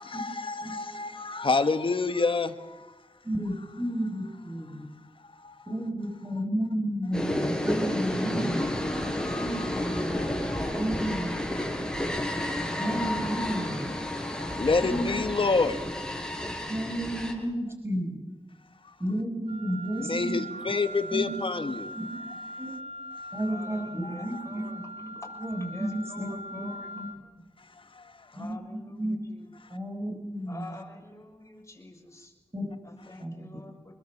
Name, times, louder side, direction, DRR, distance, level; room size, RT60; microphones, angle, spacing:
voice 1, 0.0-2.9 5.3-5.6 8.9-10.8 12.3-12.7 14.1-15.8 18.8-18.9 20.0-21.9 24.0-24.4 27.9-28.3, left 4 dB, 55° left, 9 dB, 1.8 m, -29 dB
voice 2, 3.2-4.9 5.7-8.8 9.4-10.3 10.7-12.0 12.8-13.9 14.8-15.2 16.7-18.3 19.0-20.4 21.1-21.4 21.9-22.2 22.6-22.7 23.3-27.3 28.4-29.2 29.7-30.7 32.5-32.7 33.2-33.3, right 1 dB, 25° right, 3 dB, 5.8 m, -32 dB
sound 1, 7.1-17.3, left 1 dB, 5° left, 6.1 m, -31 dB
Wind instrument woodwind instrument, 19.5-27.2, right 1 dB, 70° right, 4.9 m, -41 dB
voice 3, 23.5-24.8 25.2-25.3 25.7-26.9 28.3-29.4 30.5-32.3 32.8-33.9, left 2 dB, 25° left, 3 dB, 6.1 m, -47 dB
26.0 x 22.0 x 7.4 m, 1.2 s
wide cardioid pair, 75°, 11 cm